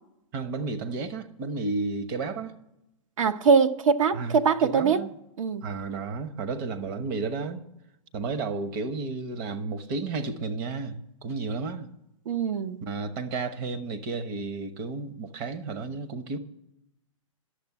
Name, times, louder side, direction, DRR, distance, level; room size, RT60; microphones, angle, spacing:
voice 1, 0.3-2.5 4.1-5.1 5.6-7.6 8.1-11.9 12.8-16.4, right 4 dB, 40° right, 1.1 m, -32 dB
voice 2, 3.2-5.1 5.4-5.6 12.3-12.8, right 5 dB, 70° right, 0.8 m, -22 dB
11.0 x 7.1 x 8.2 m
hypercardioid pair, 140°, 17 cm